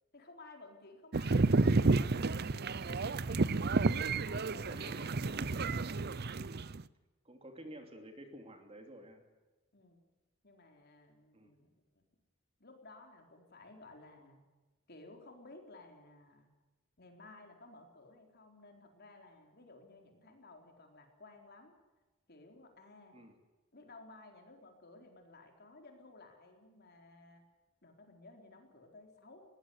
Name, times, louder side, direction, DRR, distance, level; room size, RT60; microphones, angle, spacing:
voice 1, 0.1-2.6 4.1-5.0 9.7-10.0 10.4-12.0 12.6-14.4 14.9-16.5 17.0-21.7 22.3-23.2 23.7-27.4 27.8-29.4, left 2 dB, 50° left, 3 dB, 4.2 m, -56 dB
sound 1, 1.1-6.8, right 3 dB, 50° right, 0.7 m, -31 dB
voice 2, 4.7-5.6 7.2-9.2 11.3-11.5 23.1-23.3, right 1 dB, 25° right, 5 dB, 2.9 m, -51 dB
21.0 x 18.5 x 8.1 m, 1.2 s
head